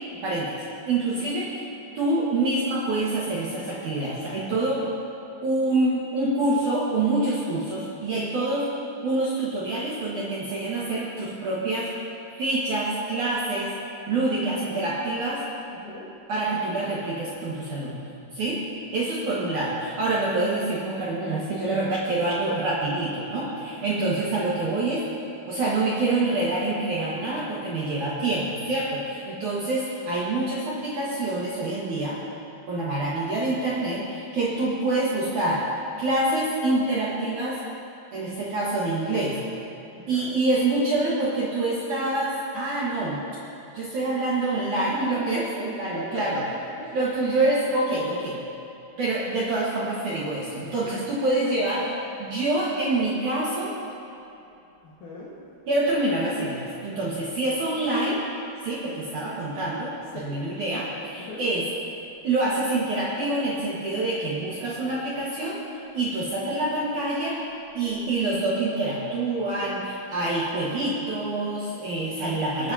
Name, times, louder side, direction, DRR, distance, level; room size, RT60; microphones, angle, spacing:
voice 1, 0.2-1.6 2.0-4.9 5.4-8.7 9.0-11.9 12.3-13.7 14.1-15.4 16.3-18.0 18.3-18.6 18.9-25.0 25.5-32.2 32.7-35.7 36.0-37.6 38.1-39.4 40.1-43.2 43.7-46.4 46.9-48.4 49.0-51.9 52.2-53.7 55.7-58.2 58.6-61.7 62.2-65.6 65.9-67.4 67.7-72.7, right 2 dB, 60° right, -7 dB, 2.1 m, -26 dB
voice 2, 15.7-16.1 23.8-24.0 40.0-40.3 45.9-47.0 55.0-55.3 60.1-60.3 61.2-61.5 72.1-72.3, left 2 dB, 60° left, -6 dB, 2.3 m, -39 dB
25.5 x 9.9 x 2.8 m, 2.8 s
omnidirectional pair, 5.4 m